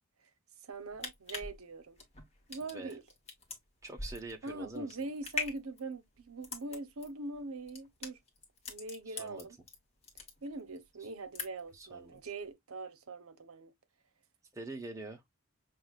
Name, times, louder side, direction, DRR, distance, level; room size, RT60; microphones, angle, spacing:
voice 1, 0.6-2.0 2.5-3.0 4.4-8.2 8.7-9.6 10.4-13.7, right 2 dB, 75° right, 0.8 m, -42 dB
sound 1, 0.7-9.8 10.0-10.8 11.1-11.8 12.1-12.3, left 3 dB, 30° left, 1.2 m, -42 dB
voice 2, 2.6-3.0 3.8-5.0 9.1-9.5 11.7-12.2 14.5-15.2, right 2 dB, 15° right, 0.7 m, -45 dB
6.1 x 2.5 x 2.4 m
head